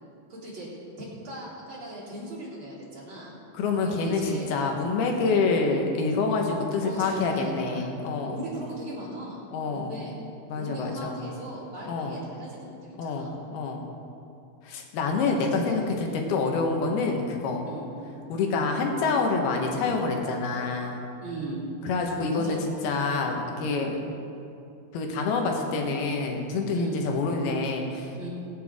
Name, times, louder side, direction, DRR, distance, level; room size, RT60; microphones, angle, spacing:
voice 1, 0.3-0.7 1.0-3.3 3.8-4.5 5.0-5.4 6.8-7.9 8.2-9.4 9.7-10.1 10.5-13.3 15.2-16.2 17.6-17.9 21.2-21.6 22.3-22.6 23.0-23.3 23.7-23.9 26.7-27.1 28.2-28.3, right 1 dB, 35° right, -7 dB, 4.2 m, -38 dB
voice 2, 3.5-8.4 9.5-9.9 10.5-11.2 11.9-12.2 13.0-13.8 14.7-17.7 18.3-21.0 21.8-22.6 22.8-23.9 24.9-28.3, left 4 dB, 85° left, 2 dB, 3.3 m, -27 dB
24.5 x 8.4 x 3.7 m, 2.6 s
omnidirectional pair, 4.3 m